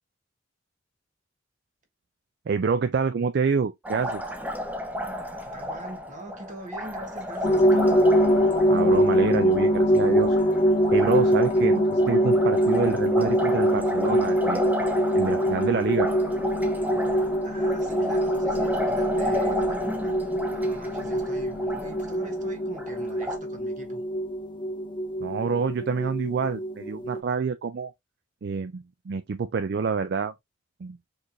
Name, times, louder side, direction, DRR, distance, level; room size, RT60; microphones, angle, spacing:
voice 1, 2.5-4.2 8.7-10.4 10.9-14.7 15.1-16.1 25.2-27.9 28.4-30.3 30.8-31.0, right 5 dB, 60° right, 0.4 m, -27 dB
Liquid, 3.8-23.4, left 1 dB, 10° right, 0.7 m, -32 dB
voice 2, 5.4-7.9 17.4-20.2 20.5-24.0, right 2 dB, 40° right, 1.3 m, -43 dB
sound 1, 7.4-27.2, equal, 25° left, 0.4 m, -24 dB
4.3 x 3.3 x 2.7 m
head